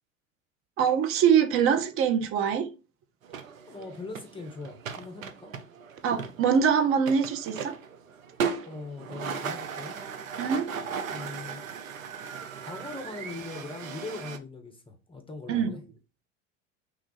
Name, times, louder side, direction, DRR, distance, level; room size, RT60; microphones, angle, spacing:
voice 1, 0.8-2.7 6.0-7.8 10.4-10.7 15.5-15.7, right 7 dB, 35° right, 0.6 m, -24 dB
sound 1, 3.2-14.4, right 6 dB, 90° right, 0.5 m, -37 dB
voice 2, 3.6-5.5 8.6-10.0 11.1-11.6 12.6-15.8, left 3 dB, 15° left, 0.6 m, -40 dB
3.1 x 2.3 x 3.8 m
figure-of-eight pair, 75°, 39 cm